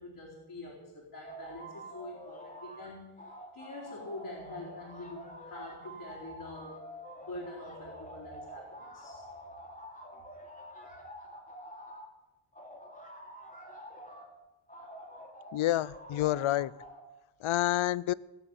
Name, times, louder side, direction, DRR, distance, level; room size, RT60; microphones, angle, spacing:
voice 1, 0.0-3.1 3.5-6.8 7.2-9.2, left 2 dB, 50° left, -5 dB, 4.3 m, -45 dB
sound 1, 1.2-2.9 3.2-12.1 12.5-14.3 14.7-17.0, equal, 15° left, 3.0 m, -47 dB
voice 2, 15.5-16.7 17.4-18.1, left 14 dB, 75° left, 21 dB, 0.6 m, -28 dB
18.5 x 8.0 x 9.2 m, 1.1 s
wide cardioid pair, 140°, 49 cm